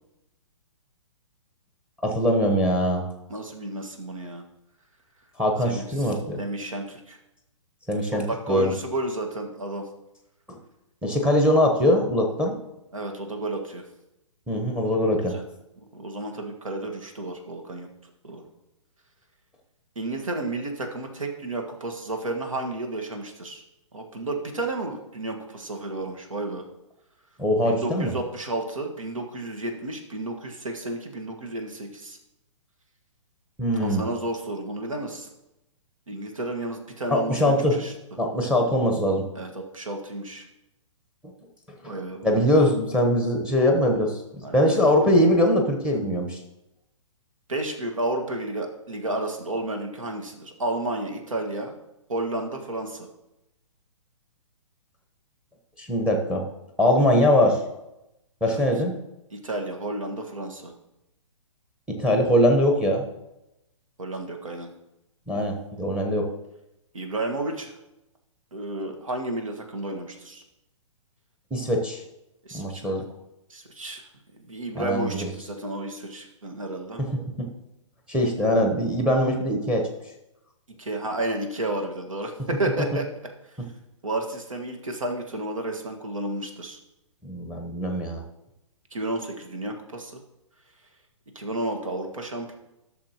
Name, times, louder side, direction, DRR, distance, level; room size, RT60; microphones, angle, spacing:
voice 1, 2.0-3.1 5.4-6.4 7.9-8.7 10.5-10.6 11.0-12.6 14.5-15.4 27.4-28.1 33.6-34.0 37.1-37.8 38.2-39.3 42.2-44.2 44.5-46.4 55.8-56.5 56.8-57.6 58.4-58.9 61.9-63.1 65.3-66.3 71.5-72.0 72.5-73.0 74.7-75.3 77.1-77.5 78.1-79.9 83.6-83.7 87.2-88.2, equal, 5° right, 2 dB, 1.0 m, -22 dB
voice 2, 3.3-4.4 5.7-7.2 8.1-9.9 12.9-13.8 15.1-15.4 15.9-17.9 18.2-18.5 20.0-23.6 23.9-26.7 27.6-32.2 33.8-35.3 36.1-37.9 39.4-40.5 41.9-42.4 44.4-44.9 47.5-51.8 52.1-53.1 58.5-58.7 59.3-60.7 64.0-64.7 66.9-67.8 68.5-70.4 72.4-73.1 73.5-74.0 74.3-77.0 80.8-83.1 83.5-83.6 84.0-86.8 88.9-90.2 91.4-92.5, right 2 dB, 75° right, 3 dB, 1.7 m, -32 dB
12.5 x 6.5 x 2.9 m, 0.91 s
figure-of-eight pair, 125°, 17 cm